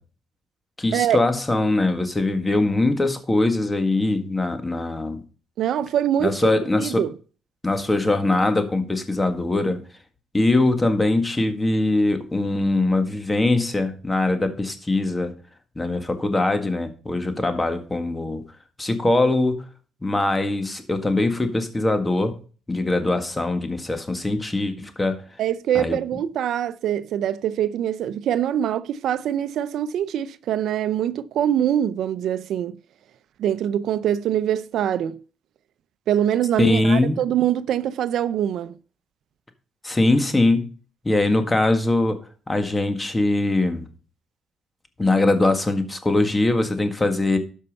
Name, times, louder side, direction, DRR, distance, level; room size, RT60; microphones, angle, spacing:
voice 1, 0.8-5.2 6.2-7.0 7.6-9.8 10.3-15.3 15.8-18.4 18.8-19.6 20.0-22.4 22.7-25.2 25.8-26.0 36.6-37.2 39.8-40.7 41.1-42.2 42.5-43.9 45.0-47.4, left 2 dB, 20° left, 1.8 m, -22 dB
voice 2, 5.6-6.5 6.8-7.1 25.4-32.8 33.4-35.2 36.1-38.7, right 10 dB, 75° right, 0.5 m, -24 dB
12.5 x 5.5 x 5.4 m
cardioid pair, 90°, 0 cm